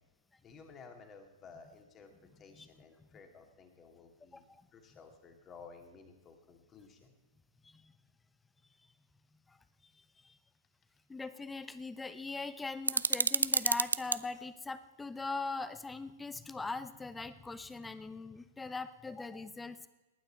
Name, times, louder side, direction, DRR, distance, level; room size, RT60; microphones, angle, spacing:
voice 1, 0.4-4.4 4.7-7.1, left 5 dB, 25° left, 5 dB, 2.3 m, -55 dB
voice 2, 4.3-4.7 7.6-7.9 9.5-10.4 11.1-19.9, left 3 dB, 10° left, 13 dB, 0.8 m, -41 dB
sound 1, 12.8-14.2, right 4 dB, 85° right, 0.4 m, -29 dB
19.0 x 9.3 x 4.5 m, 1.1 s
figure-of-eight pair, 105°, 0 cm